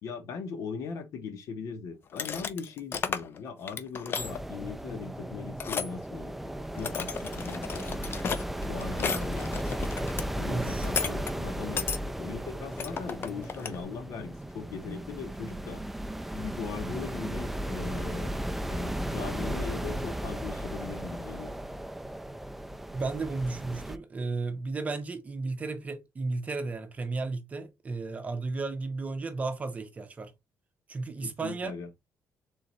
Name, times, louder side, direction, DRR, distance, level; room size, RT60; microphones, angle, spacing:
voice 1, 0.0-8.1 8.6-9.7 10.4-15.8 16.3-18.3 18.7-21.5 31.2-31.9, left 5 dB, 75° left, 1.1 m, -39 dB
sound 1, 2.1-3.4 3.6-4.4 5.6-5.9 6.7-10.2 10.8-11.3 11.8-12.0 12.8-13.8, left 6 dB, 45° left, 0.6 m, -33 dB
sound 2, 4.2-24.0, right 1 dB, 5° right, 0.3 m, -35 dB
voice 2, 10.5-10.9 22.9-30.3 30.9-31.7, right 3 dB, 25° right, 0.8 m, -34 dB
3.8 x 3.0 x 4.0 m
cardioid pair, 145°, 5 cm